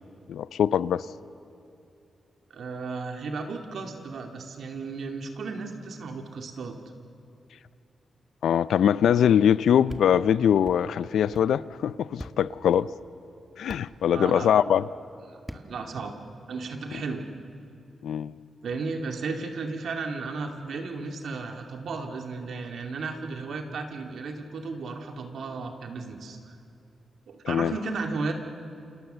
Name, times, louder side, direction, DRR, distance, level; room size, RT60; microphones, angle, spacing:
voice 1, 0.3-1.0 8.4-12.9 13.6-14.9 18.0-18.3 27.4-27.7, left 9 dB, 85° left, 0.5 m, -22 dB
voice 2, 2.5-6.8 14.1-14.5 15.3-16.1 16.5-17.2 18.6-26.6 27.3-28.3, right 4 dB, 75° right, 2.5 m, -34 dB
sound 1, 9.9-10.1 10.7-10.8 11.3-11.5 12.2-12.4 13.7-13.8 15.5-15.7, equal, ahead, 1.7 m, -39 dB
29.0 x 27.5 x 6.9 m
cardioid pair, 75°, 0 cm